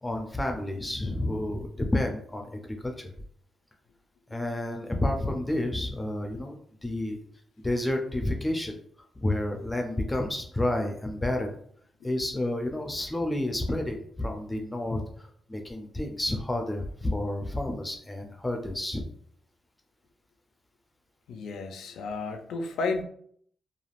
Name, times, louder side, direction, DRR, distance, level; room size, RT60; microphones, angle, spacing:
voice 1, 0.0-3.1 4.3-7.2 7.6-8.7 9.2-11.5 12.0-19.0, left 1 dB, 15° left, 3 dB, 0.4 m, -30 dB
voice 2, 21.3-23.0, left 3 dB, 85° left, 5 dB, 0.4 m, -32 dB
3.2 x 2.3 x 2.4 m, 0.63 s
cardioid pair, 110°, 0 cm